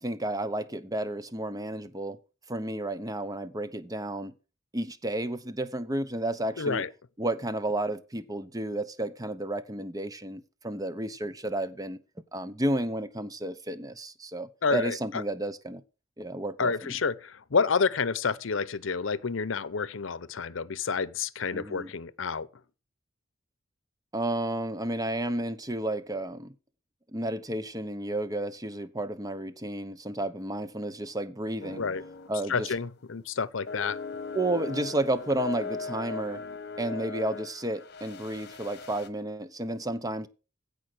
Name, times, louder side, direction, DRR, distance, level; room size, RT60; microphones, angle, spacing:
voice 1, 0.0-2.2 2.5-4.3 4.7-6.8 7.2-12.0 12.3-15.8 16.2-16.9 21.5-21.9 24.1-26.5 27.1-31.8 32.3-32.7 34.3-36.4 36.8-40.3, right 1 dB, 20° right, 0.9 m, -32 dB
voice 2, 6.6-6.9 14.6-15.2 16.6-22.5 31.8-32.0 32.5-34.0, left 5 dB, 75° left, 0.7 m, -29 dB
sound 1, 31.6-32.4 32.7-32.9 33.7-39.1, left 4 dB, 55° left, 1.1 m, -38 dB
15.5 x 5.2 x 6.2 m
head